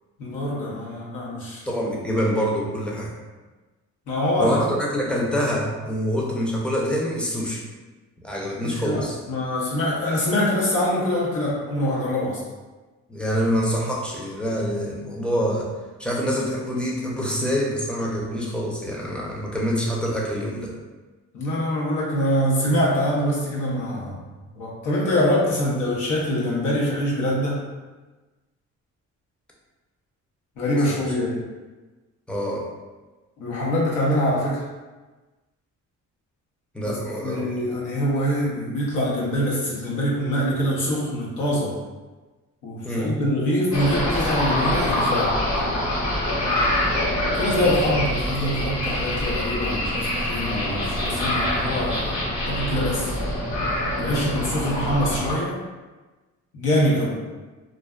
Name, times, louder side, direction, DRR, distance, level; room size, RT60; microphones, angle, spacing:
voice 1, 0.2-1.6 4.1-4.7 8.6-12.4 21.3-24.2 24.5-27.6 30.6-31.5 33.4-34.6 36.8-37.0 37.2-41.8 42.6-45.4 47.3-52.2 52.5-53.1 54.0-55.6 56.5-57.2, equal, 85° left, -5 dB, 0.8 m, -24 dB
voice 2, 1.6-3.1 4.4-7.6 8.2-9.2 13.1-15.7 16.0-20.8 30.9-31.0 32.3-32.7 36.7-37.8 42.8-43.2, equal, 5° left, -4 dB, 0.5 m, -26 dB
sound 1, 43.7-55.3, left 1 dB, 60° left, 1.0 m, -25 dB
2.4 x 2.3 x 2.3 m, 1.3 s
cardioid pair, 90°, 30 cm